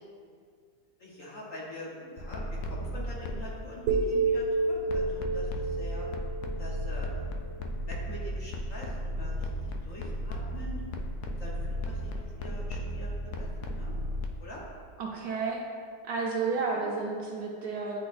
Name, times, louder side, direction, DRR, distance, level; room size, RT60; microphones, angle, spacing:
voice 1, 1.0-6.1 6.6-7.4 7.9-9.5 9.8-10.8 11.2-12.1 12.4-13.9 14.4-14.6 16.5-16.9, left 1 dB, 50° left, -5 dB, 1.3 m, -44 dB
sound 1, 2.2-3.6 4.9-14.3, equal, 70° left, 1.0 m, -35 dB
sound 2, 3.9-8.0, right 3 dB, 85° right, 1.3 m, -30 dB
voice 2, 15.0-15.6 16.0-18.0, right 4 dB, 70° right, -2 dB, 1.0 m, -31 dB
9.9 x 3.8 x 2.5 m, 2.1 s
omnidirectional pair, 1.9 m